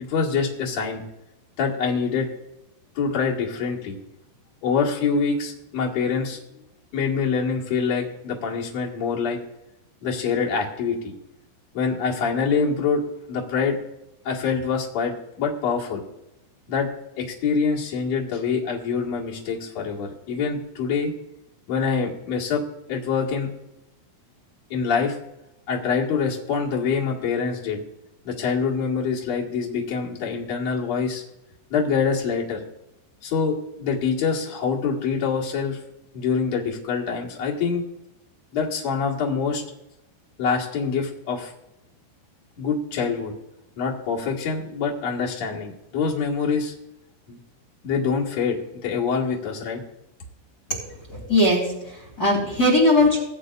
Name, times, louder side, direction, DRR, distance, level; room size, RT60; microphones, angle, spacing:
voice 1, 0.1-1.0 1.6-2.3 3.0-4.0 4.6-6.4 6.9-9.4 10.0-11.1 11.7-13.0 13.3-13.8 14.2-16.0 16.7-16.9 17.2-21.1 21.7-22.6 22.9-23.5 24.7-25.2 25.7-27.8 28.2-31.2 31.7-32.6 33.2-35.8 36.1-37.8 38.5-39.6 40.4-41.5 42.6-43.3 43.8-46.7 47.3-47.4 47.8-49.8, left 5 dB, 60° left, -4 dB, 1.8 m, -25 dB
voice 2, 50.7-53.2, left 1 dB, 25° left, -3 dB, 2.2 m, -20 dB
22.0 x 8.2 x 2.5 m, 0.91 s
omnidirectional pair, 5.9 m